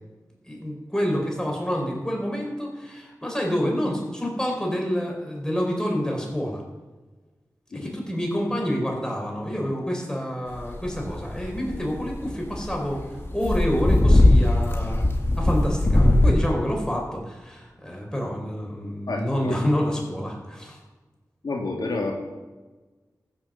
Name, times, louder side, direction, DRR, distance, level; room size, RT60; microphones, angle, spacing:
voice 1, 0.5-6.6 7.7-13.1 13.3-15.0 15.4-20.8, equal, 10° left, 0 dB, 4.7 m, -28 dB
sound 1, 10.6-16.3, left 1 dB, 35° left, 2.2 m, -19 dB
voice 2, 18.8-19.6 21.4-22.1, left 3 dB, 75° left, -1 dB, 2.5 m, -30 dB
15.0 x 6.7 x 7.1 m, 1.2 s
cardioid pair, 50°, 7 cm